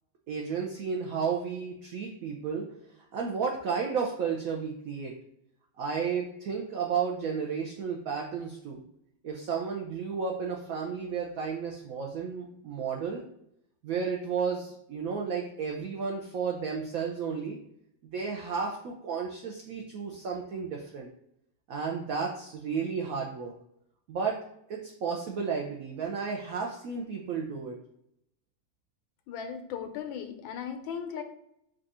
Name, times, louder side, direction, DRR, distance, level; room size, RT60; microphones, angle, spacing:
voice 1, 0.3-2.6 3.1-5.1 5.8-8.8 9.2-13.2 13.8-17.6 18.0-21.1 21.7-23.5 24.1-24.4 24.7-27.8, right 6 dB, 70° right, 0 dB, 0.8 m, -32 dB
voice 2, 29.3-31.2, left 7 dB, 85° left, 6 dB, 1.4 m, -37 dB
5.1 x 2.4 x 4.1 m, 0.75 s
omnidirectional pair, 2.1 m